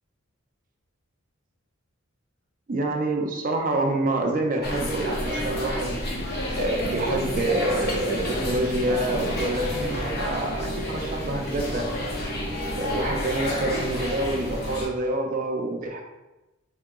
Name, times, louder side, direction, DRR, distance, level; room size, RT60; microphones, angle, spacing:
voice 1, 2.7-6.0 6.5-11.9 12.8-16.0, right 2 dB, 40° right, 3 dB, 0.3 m, -27 dB
sound 1, 4.6-14.9, equal, 45° left, 0.6 m, -29 dB
4.4 x 2.7 x 2.3 m, 1.0 s
head